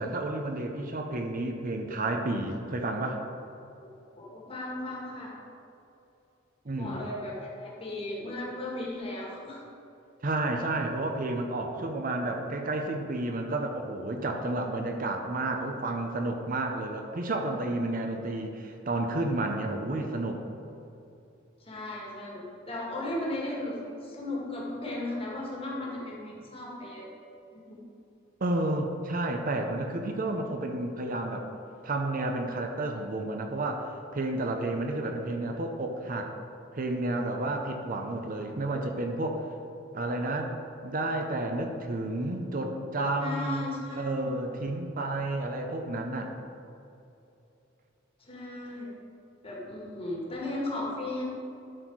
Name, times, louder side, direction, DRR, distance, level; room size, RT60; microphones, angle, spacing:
voice 1, 0.0-3.2 6.7-7.0 10.2-20.4 28.4-31.5 31.8-36.3 36.7-39.5 39.9-40.5 40.8-43.6 44.0-46.3, right 2 dB, 45° right, 3 dB, 0.7 m, -31 dB
voice 2, 4.2-5.4 6.7-9.6 21.6-27.1 27.5-27.8 43.2-44.3 48.2-48.9 49.4-51.2, left 1 dB, 30° left, -3 dB, 1.7 m, -36 dB
12.0 x 4.3 x 4.6 m, 2.7 s
head